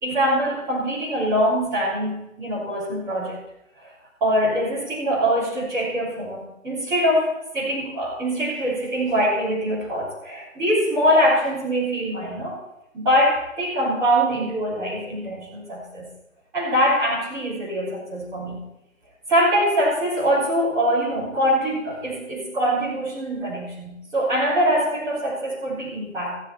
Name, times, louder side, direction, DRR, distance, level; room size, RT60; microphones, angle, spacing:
voice 1, 0.0-3.4 3.8-3.9 4.2-12.6 12.9-16.1 16.5-18.6 19.3-26.4, equal, 10° right, -9 dB, 3.1 m, -23 dB
15.0 x 13.5 x 4.3 m, 0.89 s
figure-of-eight pair, 150°, 40 cm